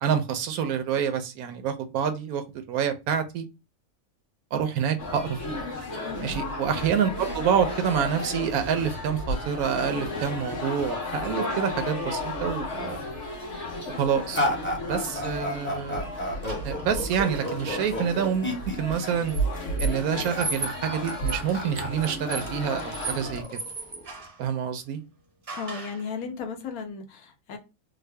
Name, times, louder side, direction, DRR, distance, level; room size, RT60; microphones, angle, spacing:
voice 1, 0.0-3.5 4.5-5.6 6.2-13.0 14.0-14.4 14.9-16.0 16.6-19.4 19.8-23.6 24.4-25.0, right 7 dB, 90° right, 1.1 m, -27 dB
sound 1, 5.0-23.4, left 1 dB, 55° left, 1.4 m, -33 dB
voice 2, 6.0-6.4 25.5-27.6, left 5 dB, 80° left, 1.2 m, -35 dB
sound 2, 14.3-24.3, left 1 dB, 10° left, 0.6 m, -32 dB
sound 3, 16.4-18.3 19.3-24.4 25.5-26.1, right 3 dB, 40° right, 0.5 m, -38 dB
3.6 x 2.0 x 3.2 m
omnidirectional pair, 1.5 m